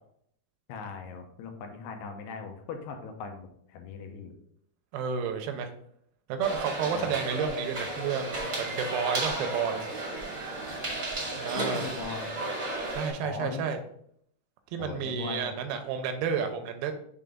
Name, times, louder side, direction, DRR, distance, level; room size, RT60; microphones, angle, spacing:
voice 1, 0.7-4.3 7.0-7.2 11.5-12.4 13.2-13.7 14.8-15.5, left 5 dB, 80° left, 4 dB, 2.8 m, -39 dB
voice 2, 4.9-5.7 6.3-9.9 11.4-11.9 12.9-13.8 14.7-16.9, right 6 dB, 80° right, 6 dB, 2.4 m, -31 dB
sound 1, 6.4-13.1, right 2 dB, 50° right, 0.9 m, -33 dB
6.7 x 3.8 x 3.7 m, 0.68 s
omnidirectional pair, 4.8 m